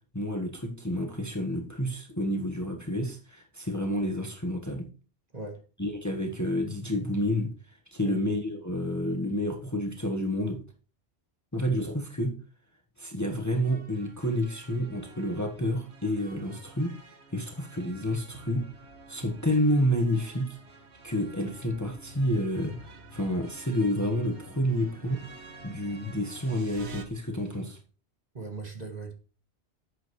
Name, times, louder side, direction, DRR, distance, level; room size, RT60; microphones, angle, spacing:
voice 1, 0.1-4.9 5.8-7.5 7.9-10.6 11.5-12.4 13.0-17.0 17.3-18.7 19.1-20.6 21.0-25.2 25.6-27.8, equal, 15° left, 1.4 m, -29 dB
voice 2, 5.3-5.6 8.0-8.2 28.3-29.1, right 3 dB, 40° right, 1.9 m, -38 dB
sound 1, 13.6-27.0, right 3 dB, 80° right, 1.6 m, -49 dB
11.5 x 8.3 x 3.2 m
omnidirectional pair, 1.1 m